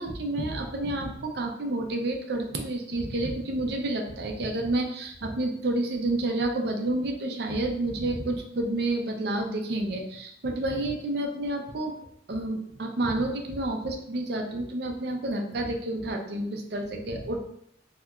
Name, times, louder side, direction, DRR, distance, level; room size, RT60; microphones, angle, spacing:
voice 1, 0.0-11.9 12.3-17.4, right 2 dB, 55° right, 3 dB, 0.5 m, -29 dB
3.4 x 2.8 x 2.3 m, 0.73 s
head